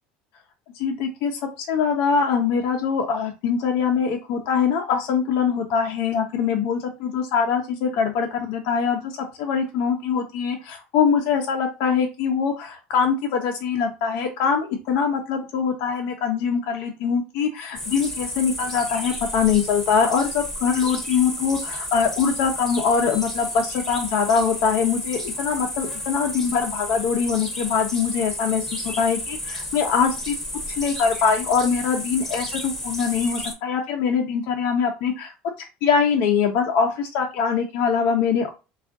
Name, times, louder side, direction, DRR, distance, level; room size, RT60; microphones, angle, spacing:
voice 1, 0.8-30.3 30.8-35.3 35.8-38.5, left 6 dB, 60° left, 2 dB, 0.7 m, -23 dB
sound 1, 17.7-33.5, left 1 dB, 10° left, 0.9 m, -32 dB
3.5 x 2.4 x 3.6 m, 0.29 s
cardioid pair, 165°, 4 cm